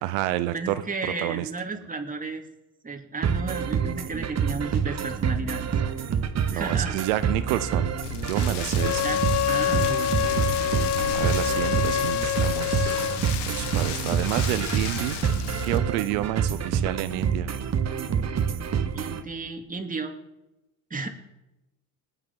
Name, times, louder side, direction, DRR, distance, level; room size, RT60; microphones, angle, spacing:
voice 1, 0.0-1.5 6.5-7.9 8.2-9.0 11.1-13.0 13.6-15.2 15.6-17.5, right 15 dB, 85° right, 13 dB, 0.8 m, -29 dB
voice 2, 0.5-2.4 2.8-5.7 6.5-7.0 9.0-9.2 9.5-10.1 18.9-20.1 20.9-21.1, right 3 dB, 20° right, 4 dB, 2.6 m, -33 dB
sound 1, 3.2-19.2, right 7 dB, 40° right, 1.4 m, -27 dB
Rain, 8.0-15.8, left 8 dB, 80° left, 1.7 m, -34 dB
Wind instrument woodwind instrument, 8.7-13.2, left 10 dB, 40° left, 0.9 m, -26 dB
20.5 x 9.4 x 5.5 m, 0.96 s
supercardioid pair, 85°, 40 cm